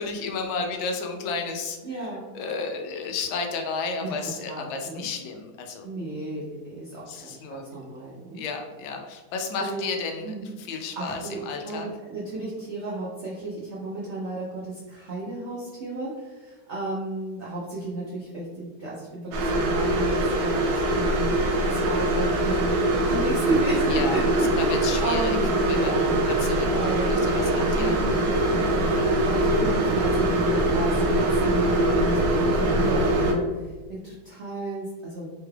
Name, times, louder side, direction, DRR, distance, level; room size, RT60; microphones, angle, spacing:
voice 1, 0.0-5.8 7.1-7.6 8.3-11.9 23.9-24.2 24.7-25.4 25.7-28.0, left 4 dB, 90° left, 3 dB, 1.4 m, -32 dB
voice 2, 1.8-2.3 4.0-4.2 4.5-5.0 5.8-8.4 9.6-9.8 10.2-10.6 11.0-11.4 11.6-24.5 25.0-26.3 26.7-27.1 27.8-28.9 29.2-35.4, right 2 dB, 90° right, -6 dB, 0.6 m, -33 dB
sound 1, 19.3-33.3, right 1 dB, 70° right, 1.0 m, -23 dB
3.7 x 2.3 x 3.2 m, 1.3 s
omnidirectional pair, 2.1 m